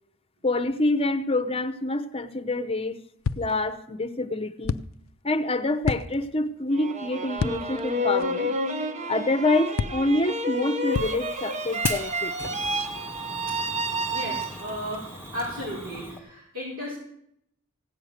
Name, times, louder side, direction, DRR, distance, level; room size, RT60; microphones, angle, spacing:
voice 1, 0.4-3.0 3.4-4.8 5.2-8.5 9.1-12.3, left 2 dB, 25° left, 10 dB, 0.8 m, -26 dB
sound 1, 3.2-3.8 4.6-5.2 5.8-6.5 7.4-7.9 8.2-8.3 9.8-10.3 10.9-11.5 11.8-12.3, left 5 dB, 65° left, 0.4 m, -31 dB
sound 2, 6.7-14.9, equal, 35° right, 0.8 m, -30 dB
Fire, 10.9-16.2, equal, 10° right, 1.8 m, -39 dB
voice 2, 14.1-15.0 15.3-17.0, equal, 70° right, -8 dB, 5.2 m, -34 dB
16.5 x 6.6 x 9.3 m, 0.75 s
head